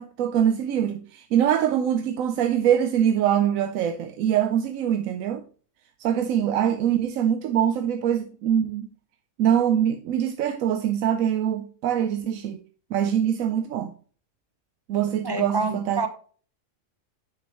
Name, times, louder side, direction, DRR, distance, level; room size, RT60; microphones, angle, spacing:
voice 1, 0.0-5.4 6.0-8.9 9.4-12.6 12.9-13.9 14.9-16.1, right 9 dB, 85° right, 1.0 m, -23 dB
voice 2, 15.2-16.1, right 3 dB, 25° right, 0.7 m, -27 dB
9.4 x 6.2 x 3.0 m
omnidirectional pair, 1.4 m